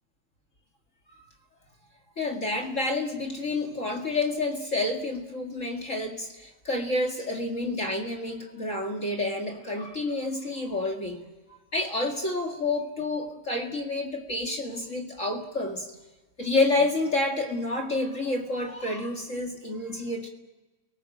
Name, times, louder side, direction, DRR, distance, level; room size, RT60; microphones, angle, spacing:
voice 1, 2.2-15.9 16.4-20.3, left 2 dB, 30° left, 4 dB, 1.8 m, -29 dB
29.5 x 19.0 x 7.8 m, 1.2 s
omnidirectional pair, 3.9 m